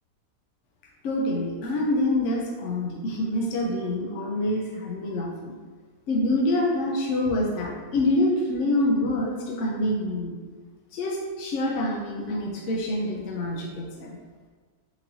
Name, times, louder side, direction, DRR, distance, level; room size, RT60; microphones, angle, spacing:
voice 1, 1.0-5.5 6.1-10.4 10.9-14.2, left 1 dB, 70° left, -2 dB, 0.7 m, -26 dB
4.5 x 2.9 x 2.6 m, 1.4 s
omnidirectional pair, 1.8 m